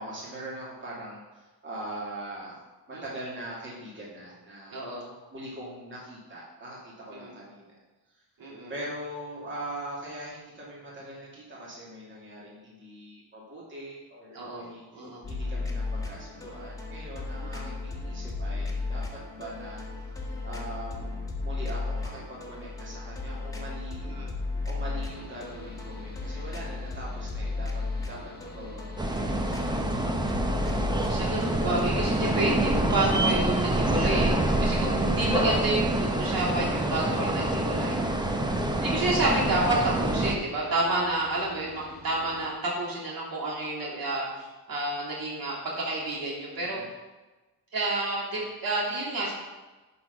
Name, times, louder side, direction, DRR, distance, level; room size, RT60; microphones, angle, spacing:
voice 1, 0.0-4.8 5.3-7.8 8.7-24.0 24.6-29.4 40.6-40.9 46.5-46.9, right 1 dB, 30° right, -6 dB, 2.6 m, -42 dB
voice 2, 4.7-5.1 7.1-7.3 8.4-8.7 14.3-15.2 17.4-17.7 24.0-24.3 31.1-38.0 38.8-46.8 47.7-49.3, right 2 dB, 60° right, -5 dB, 3.1 m, -30 dB
sound 1, 15.2-32.1, left 3 dB, 10° left, 1.6 m, -35 dB
Mechanical fan, 25.1-42.5, left 1 dB, 25° left, 1.2 m, -50 dB
sound 2, 29.0-40.4, right 1 dB, 10° right, 0.9 m, -26 dB
11.0 x 4.1 x 5.9 m, 1.2 s
cardioid pair, 105°, 40 cm